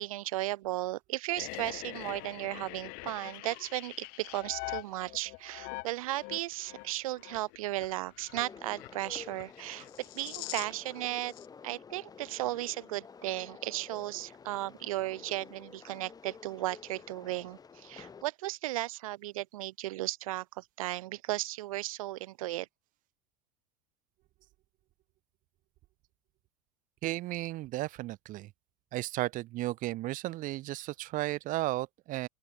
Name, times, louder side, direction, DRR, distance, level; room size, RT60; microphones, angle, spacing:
voice 1, 0.0-11.3 11.6-22.7, right 17 dB, 90° right, 0.7 m, -35 dB
sound 1, 1.4-10.9 11.2-11.5, left 29 dB, 60° left, 2.6 m, -44 dB
sound 2, 8.3-18.2, left 6 dB, 20° left, 3.4 m, -51 dB
voice 2, 27.0-28.5 28.9-32.3, right 17 dB, 50° right, 3.1 m, -34 dB
open air
supercardioid pair, 120°, 17 cm